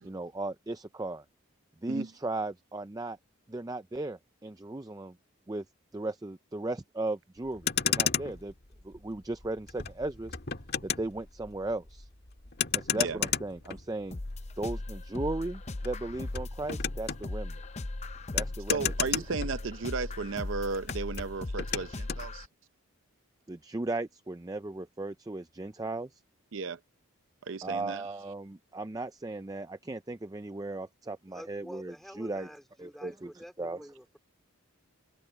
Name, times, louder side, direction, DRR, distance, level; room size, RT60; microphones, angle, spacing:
voice 1, 0.0-1.2 1.8-3.2 3.5-5.1 5.5-5.6 5.9-8.5 8.8-10.4 10.8-12.1 12.7-14.2 14.6-17.6 18.3-19.2 23.5-26.2 27.6-32.5 32.8-33.9, right 2 dB, 15° right, 0.4 m, -36 dB
Motor vehicle (road), 7.4-20.1 20.3-22.3, left 8 dB, 50° left, 1.7 m, -34 dB
sound 1, 14.1-22.5, left 2 dB, 30° left, 0.6 m, -38 dB
voice 2, 18.7-22.5 26.5-26.8 27.4-28.1, right 4 dB, 60° right, 0.6 m, -34 dB
voice 3, 31.3-34.2, equal, ahead, 4.3 m, -48 dB
head